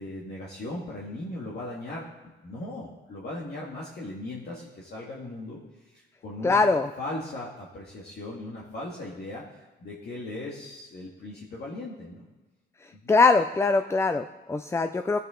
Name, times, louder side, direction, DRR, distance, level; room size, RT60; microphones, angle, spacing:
voice 1, 0.0-2.1 2.4-6.6 7.0-12.3 12.9-13.1, left 2 dB, 55° left, -4 dB, 2.0 m, -38 dB
voice 2, 6.4-6.9 13.1-15.2, left 3 dB, 15° left, 9 dB, 0.4 m, -22 dB
16.0 x 8.0 x 3.8 m, 1.2 s
cardioid pair, 90°, 20 cm